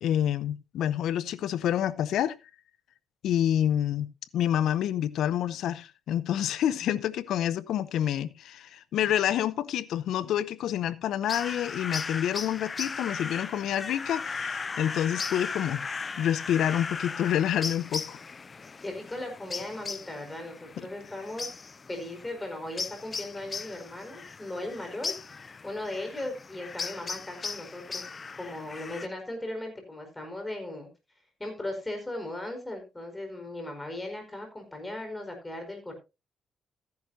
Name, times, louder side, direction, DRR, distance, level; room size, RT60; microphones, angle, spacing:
voice 1, 0.0-2.3 3.2-4.1 4.3-15.8 16.2-18.2, left 10 dB, 80° left, 0.7 m, -28 dB
sound 1, 11.3-29.1, left 4 dB, 35° left, 0.5 m, -37 dB
voice 2, 18.8-21.5 21.9-28.0 28.4-30.9 31.4-35.9, left 1 dB, 15° left, 4.7 m, -37 dB
14.0 x 10.5 x 2.7 m
cardioid pair, 90°, 0 cm